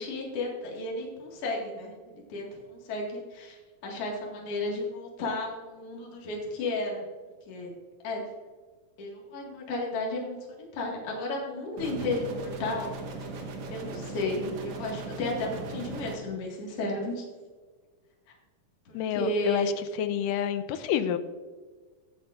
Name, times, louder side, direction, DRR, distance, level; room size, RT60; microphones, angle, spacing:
voice 1, 0.0-1.9 2.3-3.6 3.8-7.0 7.5-7.7 8.0-8.2 9.0-10.4 10.7-12.9 13.7-17.3 18.9-19.7, left 2 dB, 50° left, -2 dB, 2.7 m, -33 dB
sound 1, 11.8-16.2, right 3 dB, 65° right, 2.2 m, -38 dB
voice 2, 18.9-19.7 20.0-21.2, left 10 dB, 80° left, 11 dB, 2.1 m, -28 dB
14.5 x 8.7 x 2.5 m, 1.4 s
omnidirectional pair, 3.9 m